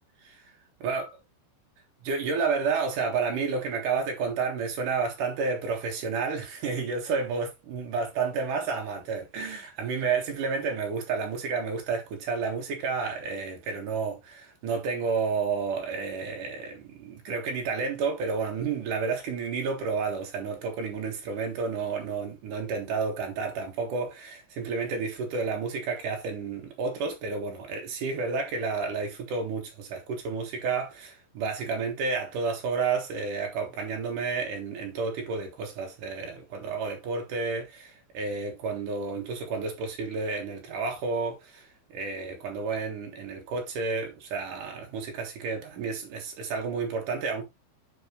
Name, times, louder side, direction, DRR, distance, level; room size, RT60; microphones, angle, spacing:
voice 1, 2.0-47.4, right 4 dB, 60° right, 2.3 m, -31 dB
9.4 x 4.7 x 3.0 m
omnidirectional pair, 5.6 m